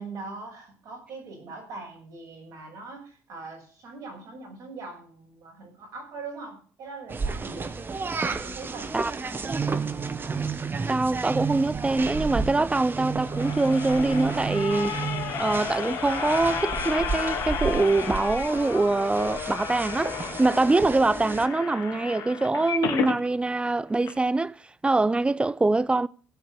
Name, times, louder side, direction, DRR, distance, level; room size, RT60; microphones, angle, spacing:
voice 1, 0.0-7.8 8.3-9.9, right 3 dB, 70° right, 6.3 m, -42 dB
sound 1, 7.1-21.5, right 5 dB, 35° right, 1.3 m, -32 dB
voice 2, 10.9-15.0 15.4-24.6 24.8-26.1, right 2 dB, 15° right, 0.6 m, -24 dB
sound 2, 13.0-23.2 23.7-23.8 24.0-24.1, left 8 dB, 70° left, 1.9 m, -33 dB
16.5 x 5.5 x 8.2 m
supercardioid pair, 65°, 6 cm